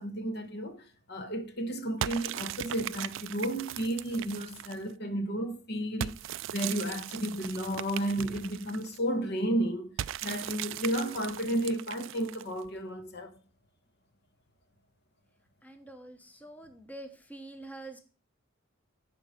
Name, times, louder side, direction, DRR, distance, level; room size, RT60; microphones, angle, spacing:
voice 1, 0.0-6.2 6.5-10.0 10.2-13.4, right 1 dB, 55° left, 1.1 m, -32 dB
sound 1, 2.0-4.9 6.0-9.0 10.0-12.6, right 11 dB, 65° right, 0.3 m, -38 dB
voice 2, 15.6-18.0, right 2 dB, 10° left, 0.8 m, -46 dB
11.5 x 4.6 x 5.1 m
head